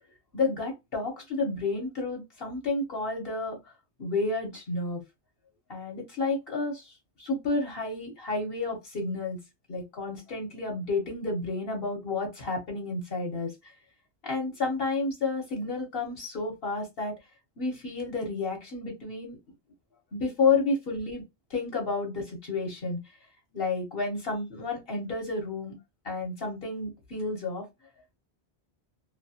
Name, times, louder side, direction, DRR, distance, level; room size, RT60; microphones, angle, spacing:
voice 1, 0.3-3.6 4.0-5.0 5.7-9.4 9.7-13.7 14.2-17.1 17.6-19.4 20.1-21.2 21.5-23.0 23.5-25.7 26.0-27.7, left 3 dB, 60° left, 1.2 m, -31 dB
2.5 x 2.3 x 2.7 m
omnidirectional pair, 1.1 m